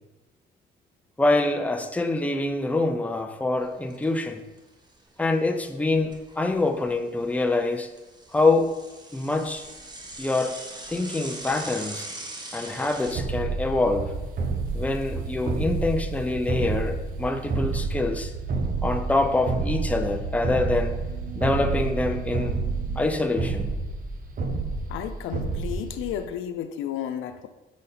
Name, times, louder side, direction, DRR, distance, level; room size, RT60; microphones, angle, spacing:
voice 1, 1.2-4.4 5.2-7.9 8.3-8.8 9.1-9.7 10.2-10.6 10.9-12.1 12.5-14.1 14.7-18.3 18.8-21.0 21.4-22.5 23.0-23.7, left 2 dB, 5° left, 5 dB, 0.6 m, -25 dB
Bicycle / Mechanisms, 3.6-4.2 4.6-4.7 4.9-5.0 5.7-6.9 7.2-13.1, right 2 dB, 20° right, 1.0 m, -41 dB
sound 1, 13.0-23.1, right 7 dB, 80° right, 0.6 m, -38 dB
sound 2, 13.1-26.2, right 3 dB, 45° right, 0.8 m, -29 dB
voice 2, 24.9-27.5, left 9 dB, 85° left, 9 dB, 0.5 m, -32 dB
6.4 x 4.1 x 4.1 m, 1.1 s
cardioid pair, 90°, 20 cm